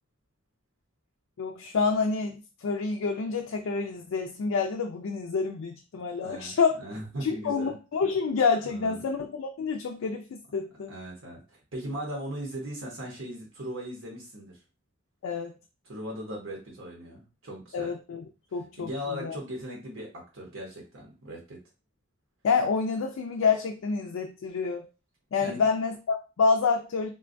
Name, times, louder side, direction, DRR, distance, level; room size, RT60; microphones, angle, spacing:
voice 1, 1.4-2.4 2.6-6.8 7.2-10.9 15.2-15.5 17.7-18.2 18.5-18.9 19.2-19.4 22.4-24.9 25.3-27.1, left 5 dB, 80° left, 2 dB, 0.4 m, -28 dB
voice 2, 6.2-7.7 8.6-9.1 10.9-14.6 15.8-17.9 18.5-21.6 25.4-25.7, equal, 65° right, -2 dB, 0.9 m, -38 dB
3.7 x 2.2 x 2.5 m, 0.31 s
head